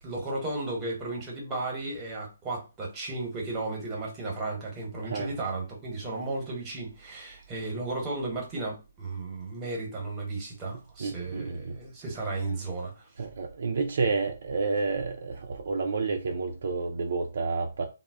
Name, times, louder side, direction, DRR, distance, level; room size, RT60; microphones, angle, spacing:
voice 1, 0.0-13.1, right 2 dB, 20° right, 1.0 m, -34 dB
voice 2, 5.0-5.3 11.0-11.8 13.2-17.8, right 4 dB, 60° right, 0.4 m, -30 dB
2.1 x 2.0 x 3.4 m
hypercardioid pair, 150°, 0 cm